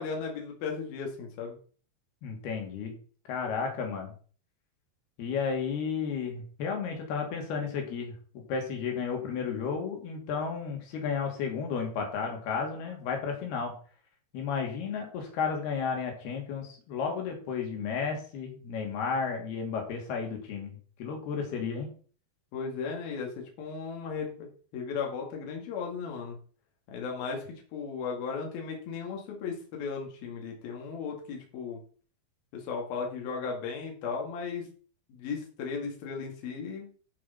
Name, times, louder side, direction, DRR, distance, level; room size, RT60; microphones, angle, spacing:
voice 1, 0.0-1.6 22.5-26.4 26.9-31.8 32.5-34.7 35.1-36.9, left 5 dB, 70° left, 0 dB, 4.0 m, -36 dB
voice 2, 2.2-2.9 3.3-4.1 5.2-8.1 8.5-13.7 14.3-21.9, left 6 dB, 85° left, 2 dB, 4.6 m, -33 dB
13.0 x 6.0 x 5.8 m, 0.42 s
omnidirectional pair, 4.4 m